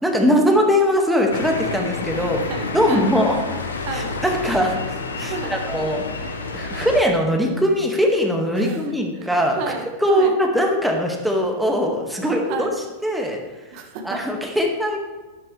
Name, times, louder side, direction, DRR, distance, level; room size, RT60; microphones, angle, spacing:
voice 1, 0.0-2.4 2.7-3.4 3.9-6.3 6.5-9.6 10.0-12.7 13.0-13.4 14.0-15.0, equal, ahead, 1 dB, 1.8 m, -21 dB
sound 1, 1.3-7.0, left 3 dB, 70° left, 1.2 m, -29 dB
voice 2, 2.1-3.1 3.9-4.1 5.3-5.5 8.5-8.8 9.1-10.3 12.2-12.7 13.7-14.2, right 4 dB, 45° right, 4 dB, 1.7 m, -32 dB
12.0 x 11.5 x 3.3 m, 1.2 s
figure-of-eight pair, 90°, 0 cm